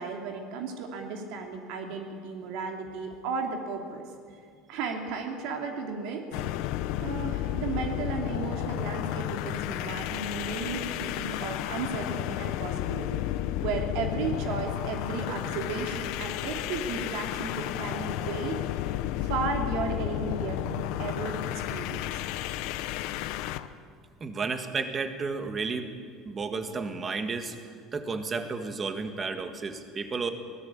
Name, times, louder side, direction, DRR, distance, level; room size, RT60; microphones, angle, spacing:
voice 1, 0.0-4.0 4.7-6.2 7.0-13.2 13.6-18.6 19.2-22.2, right 5 dB, 65° right, 3 dB, 2.9 m, -34 dB
sound 1, 6.3-23.7, left 13 dB, 65° left, 0.9 m, -32 dB
voice 2, 24.2-25.9 26.2-27.5 27.9-30.3, right 4 dB, 20° right, 7 dB, 1.7 m, -32 dB
24.5 x 18.5 x 8.6 m, 2.1 s
cardioid pair, 170°, 0 cm